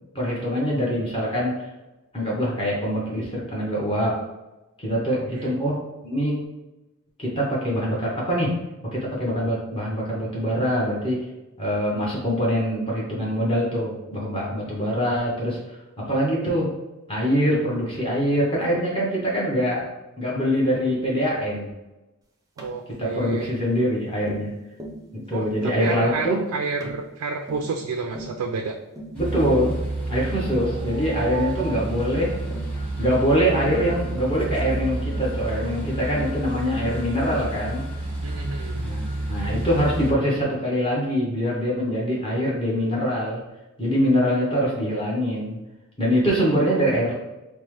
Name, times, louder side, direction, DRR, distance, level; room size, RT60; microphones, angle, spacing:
voice 1, 0.1-1.7 2.1-4.2 4.8-6.4 7.2-8.5 8.8-11.3 11.6-16.7 17.1-19.9 20.2-21.7 22.9-24.5 25.1-26.4 29.1-29.8 30.1-32.3 33.0-37.8 38.8-43.4 43.8-45.6 46.0-47.1, equal, 25° left, -6 dB, 0.9 m, -24 dB
Tap, 22.6-22.8 23.4-23.6 24.3-24.5 24.8-25.0 25.5-25.7 26.0-26.3 26.8-27.0 27.5-27.7 28.1-28.4 29.0-29.2 29.6-29.9 30.3-30.5 30.9-31.1 31.8-32.1 32.5-32.7 33.7-34.0 35.1-35.3 36.1-36.4 36.7-37.0 37.3-37.5, right 1 dB, 15° right, 0.5 m, -38 dB
voice 2, 22.6-23.5 25.3-28.7 30.6-31.8 38.2-38.9, right 4 dB, 85° right, 3 dB, 0.4 m, -30 dB
sound 1, 29.1-40.1, right 2 dB, 5° left, 1.1 m, -30 dB
5.2 x 2.1 x 3.1 m, 1.0 s
head